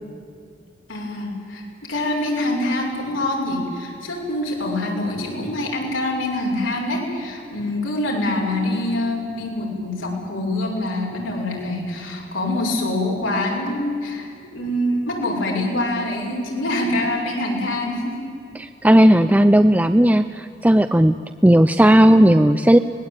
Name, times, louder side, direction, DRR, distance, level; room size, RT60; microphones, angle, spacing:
voice 1, 0.9-1.6 1.9-18.2, left 1 dB, 90° left, -1 dB, 6.4 m, -25 dB
voice 2, 18.6-21.2 21.4-22.8, right 1 dB, 10° right, 8 dB, 0.5 m, -14 dB
25.0 x 19.0 x 9.0 m, 2.5 s
head